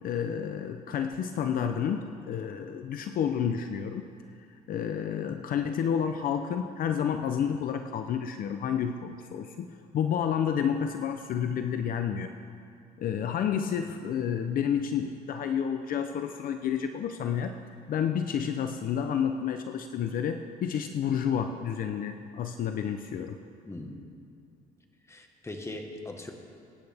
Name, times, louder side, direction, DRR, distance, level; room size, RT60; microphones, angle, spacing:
voice 1, 0.0-4.0 4.7-9.7 9.9-12.3 13.0-17.6 17.9-23.4, left 8 dB, 55° left, 7 dB, 0.7 m, -30 dB
voice 2, 23.6-24.0 25.1-26.3, left 2 dB, 15° left, 3 dB, 1.5 m, -40 dB
23.5 x 10.0 x 3.5 m, 2.4 s
cardioid pair, 110°, 17 cm